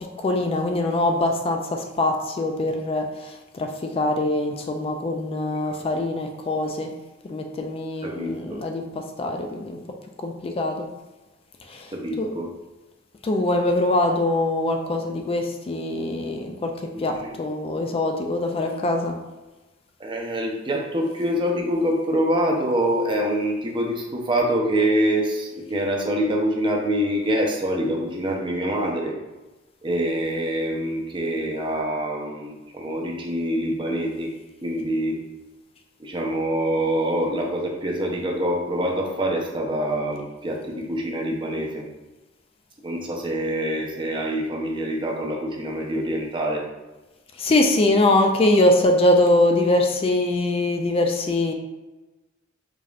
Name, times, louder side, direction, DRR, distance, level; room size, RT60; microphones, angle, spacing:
voice 1, 0.2-3.7 3.9-6.9 7.2-8.8 9.2-9.8 10.2-10.9 11.7-11.9 12.2-12.3 13.2-16.7 17.0-19.2 47.4-51.5, left 2 dB, 30° left, 3 dB, 0.3 m, -23 dB
voice 2, 8.0-8.6 11.9-12.5 16.9-17.3 20.0-29.1 29.8-34.3 34.6-35.2 36.0-41.8 42.8-46.6, right 1 dB, 25° right, -1 dB, 0.6 m, -25 dB
5.0 x 2.8 x 2.4 m, 1.1 s
head